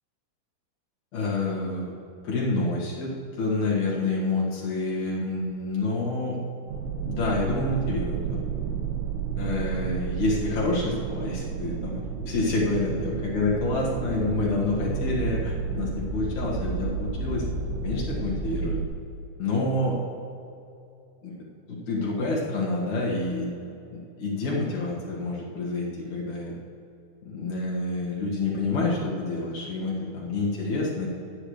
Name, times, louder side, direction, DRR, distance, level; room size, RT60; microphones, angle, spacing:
voice 1, 1.1-1.9 2.2-3.1 3.4-6.4 7.1-8.4 9.4-17.4 17.8-18.8 19.4-19.9 21.2-21.3 21.7-23.6 23.9-26.5 27.2-31.1, left 2 dB, 50° left, -5 dB, 2.5 m, -28 dB
sound 1, 6.7-18.8, right 6 dB, 90° right, 3.4 m, -31 dB
21.0 x 9.9 x 3.3 m, 2.7 s
omnidirectional pair, 5.6 m